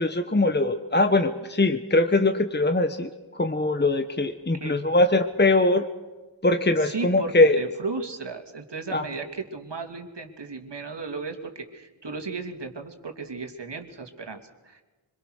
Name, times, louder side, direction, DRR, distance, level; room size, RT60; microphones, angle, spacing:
voice 1, 0.0-5.9 6.4-7.6 8.9-9.1, left 2 dB, 20° left, 8 dB, 1.1 m, -22 dB
voice 2, 6.8-14.8, right 4 dB, 55° right, 4 dB, 2.9 m, -35 dB
25.0 x 22.5 x 6.5 m, 1.2 s
wide cardioid pair, 60°, 49 cm